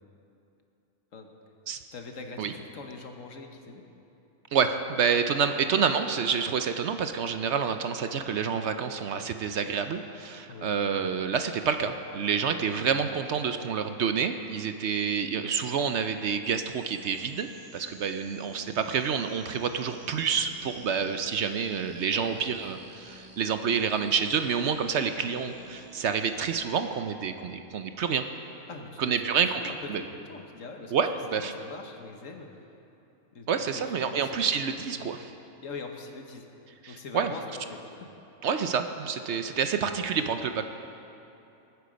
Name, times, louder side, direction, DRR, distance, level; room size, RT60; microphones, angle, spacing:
voice 1, 1.9-3.8 5.4-5.6 10.5-10.9 22.1-22.7 28.7-29.2 29.5-32.6 33.3-33.5 33.7-34.5 34.9-35.1 35.6-36.5 36.9-38.1, left 3 dB, 70° left, 4 dB, 1.5 m, -43 dB
voice 2, 4.5-17.5 17.7-28.2 29.0-30.0 30.9-31.5 33.5-35.3 36.8-37.3 38.4-40.7, right 6 dB, 60° right, 8 dB, 0.9 m, -28 dB
sound 1, 16.4-26.8, right 2 dB, 20° right, 1.4 m, -52 dB
20.5 x 9.5 x 5.1 m, 2.8 s
omnidirectional pair, 1.4 m